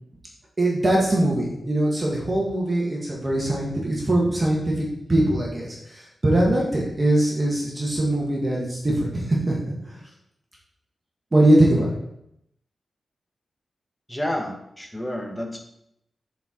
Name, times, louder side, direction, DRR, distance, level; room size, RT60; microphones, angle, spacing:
voice 1, 0.6-9.6 9.9-10.0 11.3-11.9, right 1 dB, 25° right, -3 dB, 1.3 m, -22 dB
voice 2, 14.1-15.6, left 1 dB, 10° left, 2 dB, 0.9 m, -30 dB
6.8 x 4.3 x 3.7 m, 0.78 s
wide cardioid pair, 130°, 0 cm